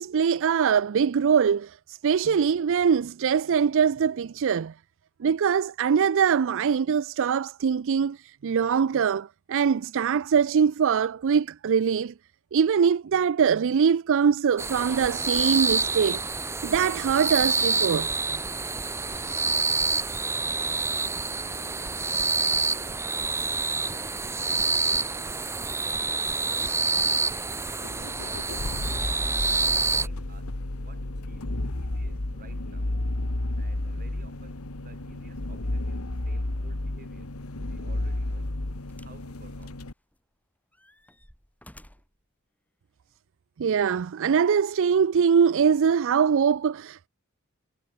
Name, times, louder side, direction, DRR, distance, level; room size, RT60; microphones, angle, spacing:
voice 1, 0.0-4.7 5.2-12.1 12.5-16.2 16.6-18.1 43.6-47.1, right 7 dB, 60° right, 0.4 m, -23 dB
sound 1, 14.6-30.1, right 4 dB, 10° right, 0.6 m, -27 dB
voice 2, 19.0-19.6 19.9-23.8 24.4-25.6 26.4-29.2 29.7-32.9 33.6-37.4 37.7-38.5 39.0-39.8, right 3 dB, 40° right, 7.2 m, -56 dB
sound 2, 27.8-39.9, left 1 dB, 80° left, 1.9 m, -32 dB
sound 3, 38.9-39.3 39.6-40.3 40.7-42.2 43.1-43.2, left 1 dB, 5° left, 4.9 m, -54 dB
head